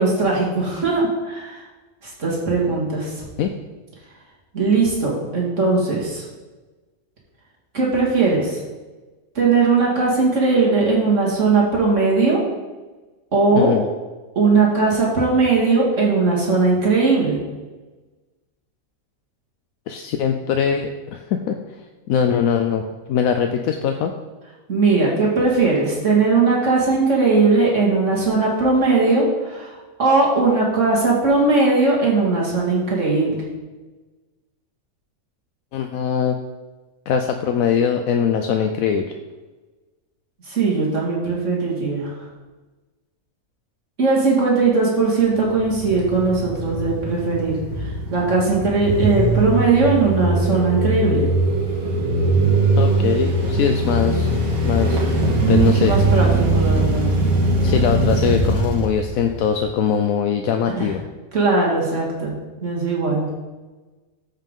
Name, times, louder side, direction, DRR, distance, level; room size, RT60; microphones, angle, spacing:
voice 1, 0.0-1.7 2.0-3.2 4.5-6.2 7.7-8.6 9.4-12.4 13.3-13.7 14.4-17.4 24.7-33.4 40.5-42.2 44.0-47.6 48.1-51.3 55.4-57.1 60.8-60.9 61.3-63.3, right 3 dB, 60° right, -4 dB, 2.3 m, -19 dB
voice 2, 13.6-13.9 19.9-21.6 22.1-22.8 23.1-24.1 35.7-36.4 37.1-39.0 52.8-54.3 54.6-55.0 55.5-56.0 57.6-61.0, left 7 dB, 80° left, 5 dB, 1.0 m, -21 dB
sound 1, 45.3-59.6, right 2 dB, 80° right, 2.1 m, -21 dB
14.0 x 5.7 x 3.7 m, 1.2 s
omnidirectional pair, 1.5 m